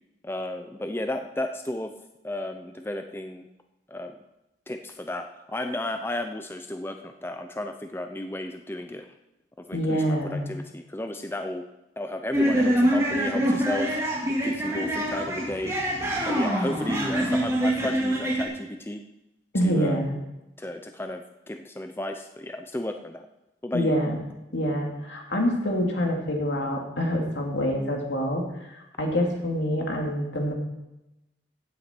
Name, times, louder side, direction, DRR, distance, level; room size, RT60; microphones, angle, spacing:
voice 1, 0.2-1.9 2.2-3.5 3.9-4.1 4.7-9.1 9.6-11.6 12.0-13.9 14.3-15.7 16.2-19.0 19.6-20.2 20.6-23.2 23.6-23.9, left 1 dB, 10° left, 6 dB, 0.5 m, -33 dB
voice 2, 9.7-10.4 19.5-20.1 23.7-24.2 24.5-28.5 29.0-30.5, equal, 70° left, 1 dB, 2.6 m, -26 dB
sound 1, 12.3-18.4, equal, 15° right, 2.2 m, -25 dB
15.0 x 9.1 x 4.5 m, 0.96 s
head